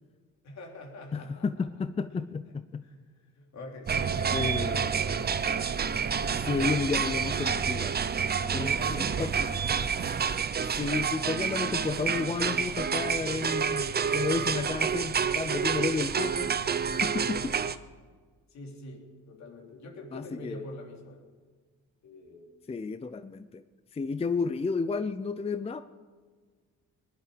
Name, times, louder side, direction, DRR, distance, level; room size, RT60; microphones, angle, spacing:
voice 1, 0.4-1.7 2.1-2.2 2.8-3.0 3.3-5.7 8.4-9.7 18.5-21.3 22.0-22.5, left 1 dB, 65° left, 0 dB, 3.3 m, -44 dB
voice 2, 1.1-2.8 4.3-4.8 6.3-7.9 8.5-9.3 10.6-16.5 17.0-17.6 20.1-20.6 22.7-23.6 23.9-25.8, left 4 dB, 20° left, 12 dB, 0.5 m, -32 dB
sound 1, 3.9-17.7, right 6 dB, 35° right, 0.7 m, -29 dB
19.0 x 11.0 x 5.1 m, 1.5 s
cardioid pair, 90°, 30 cm